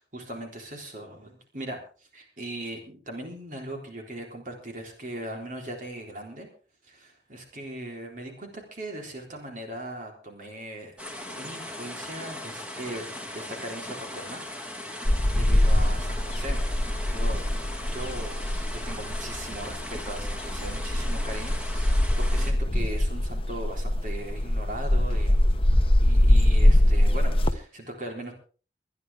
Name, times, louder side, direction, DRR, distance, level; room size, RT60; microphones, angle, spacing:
voice 1, 0.0-1.8 2.1-6.5 6.8-11.0 11.4-13.1 13.3-14.4 14.9-16.6 17.1-17.4 17.8-18.5 18.7-25.4 26.0-28.3, right 1 dB, 50° right, 1 dB, 3.8 m, -39 dB
sound 1, 11.0-22.5, left 1 dB, 5° right, 2.2 m, -38 dB
sound 2, 15.0-27.5, left 1 dB, 30° left, 1.1 m, -23 dB
25.0 x 10.5 x 3.5 m, 0.38 s
head